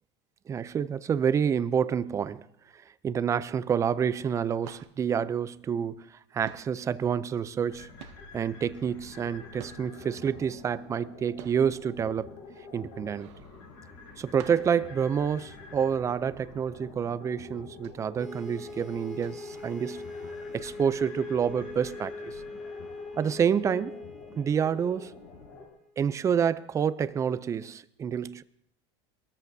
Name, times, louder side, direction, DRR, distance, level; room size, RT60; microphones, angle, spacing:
voice 1, 0.5-2.5 2.7-6.1 6.3-7.9 8.3-12.3 12.7-13.3 14.2-20.0 20.5-22.4 23.2-24.0 24.4-25.2 26.0-28.4, right 7 dB, 20° right, 0.4 m, -28 dB
sound 1, 4.6-6.2 6.4-10.2 10.6-15.9 16.3-16.4 16.7-17.0 17.5-20.3 20.6-21.1 21.8-21.9, right 12 dB, 90° right, 0.8 m, -51 dB
sound 2, 7.7-25.7, left 4 dB, 90° left, 4.6 m, -48 dB
sound 3, 18.2-25.9, left 3 dB, 5° left, 2.5 m, -42 dB
23.0 x 14.0 x 2.7 m
supercardioid pair, 140°, 14 cm